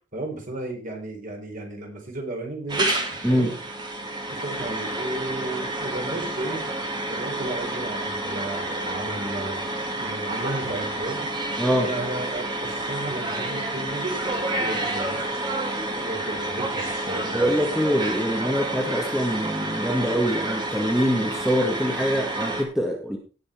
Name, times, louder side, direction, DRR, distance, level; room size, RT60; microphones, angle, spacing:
voice 1, 0.1-3.5 4.3-6.6 7.1-9.6 10.0-11.5 11.8-15.3 16.1-17.5, right 2 dB, 40° right, 1 dB, 4.2 m, -33 dB
sound 1, 2.7-22.6, right 2 dB, 20° right, 2.2 m, -29 dB
voice 2, 11.6-11.9 17.3-23.2, equal, ahead, 0 dB, 1.8 m, -24 dB
18.5 x 6.2 x 4.5 m, 0.35 s
head